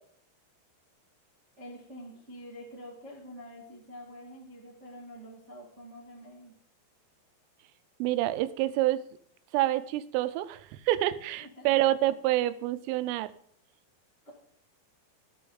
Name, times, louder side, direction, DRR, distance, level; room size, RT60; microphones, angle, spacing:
voice 1, 1.6-6.5 11.4-11.7 14.2-14.3, equal, 50° right, -5 dB, 0.8 m, -47 dB
voice 2, 8.0-9.0 9.5-13.3, right 15 dB, 85° right, 12 dB, 3.2 m, -27 dB
16.5 x 6.8 x 3.9 m, 0.65 s
omnidirectional pair, 5.7 m